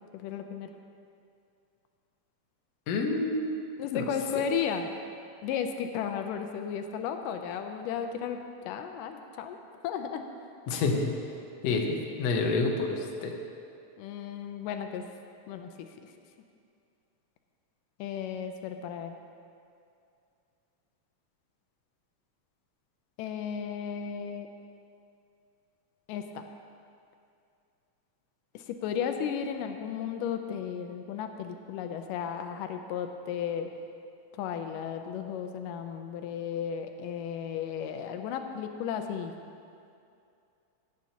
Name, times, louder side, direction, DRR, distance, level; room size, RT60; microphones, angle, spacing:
voice 1, 0.1-0.7 3.8-4.9 5.4-8.4 8.7-9.6 9.8-10.2 14.0-15.0 15.5-15.9 18.0-19.2 23.2-24.5 26.1-26.4 28.5-33.7 34.3-39.3, left 8 dB, 85° left, 6 dB, 2.2 m, -34 dB
voice 2, 2.9-3.6 3.9-4.0 10.7-11.1 11.6-13.3, left 3 dB, 65° left, 1 dB, 1.8 m, -28 dB
17.0 x 9.2 x 2.9 m, 2.5 s
omnidirectional pair, 3.7 m